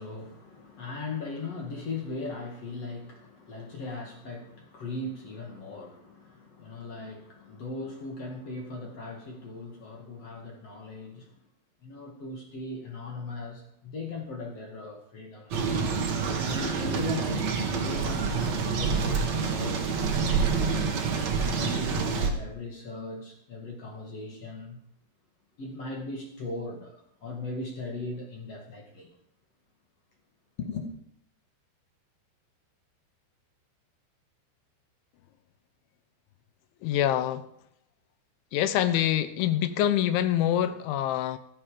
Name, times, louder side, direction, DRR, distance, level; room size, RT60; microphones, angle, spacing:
voice 1, 0.0-11.4 11.8-15.6 16.3-20.9 21.5-24.8 25.6-29.1 30.6-30.9, left 3 dB, 45° left, 1 dB, 2.4 m, -38 dB
sound 1, 15.5-22.3, right 5 dB, 55° right, 2.2 m, -27 dB
voice 2, 36.8-37.5 38.5-41.4, left 11 dB, 85° left, 12 dB, 3.3 m, -25 dB
15.5 x 14.0 x 5.2 m, 0.70 s
omnidirectional pair, 5.3 m